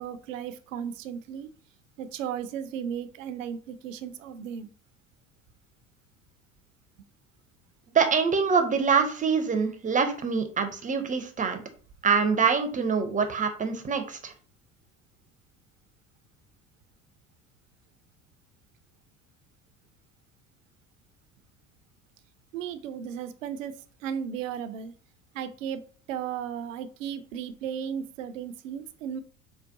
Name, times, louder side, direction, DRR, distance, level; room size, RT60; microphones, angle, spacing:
voice 1, 0.0-1.5 2.0-4.7 22.5-24.9 25.3-29.2, right 8 dB, 75° right, 12 dB, 0.5 m, -35 dB
voice 2, 7.9-11.6 12.0-14.3, right 5 dB, 20° right, 7 dB, 0.6 m, -25 dB
4.6 x 2.2 x 2.6 m, 0.41 s
figure-of-eight pair, 65°, 39 cm